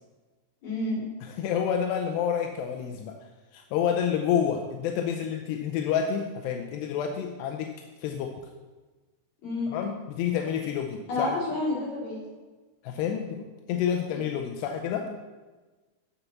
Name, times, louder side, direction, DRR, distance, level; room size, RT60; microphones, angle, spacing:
voice 1, 0.6-1.1 9.4-9.7 11.1-12.2, left 2 dB, 40° left, -7 dB, 4.7 m, -29 dB
voice 2, 1.2-3.1 3.5-7.7 8.0-8.3 9.7-11.4 12.8-15.1, left 8 dB, 85° left, 4 dB, 2.7 m, -29 dB
7.1 x 6.9 x 7.1 m, 1.3 s
omnidirectional pair, 4.8 m